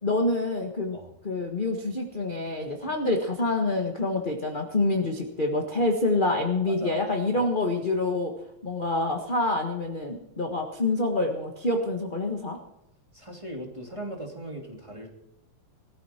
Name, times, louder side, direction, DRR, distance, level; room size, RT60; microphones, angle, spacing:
voice 1, 0.0-1.0 1.2-8.3 8.6-12.6, left 2 dB, 25° left, 2 dB, 1.1 m, -27 dB
voice 2, 6.7-7.0 7.3-7.5 13.1-15.1, right 1 dB, 10° right, 0 dB, 2.6 m, -39 dB
21.0 x 14.0 x 4.5 m, 0.82 s
omnidirectional pair, 3.3 m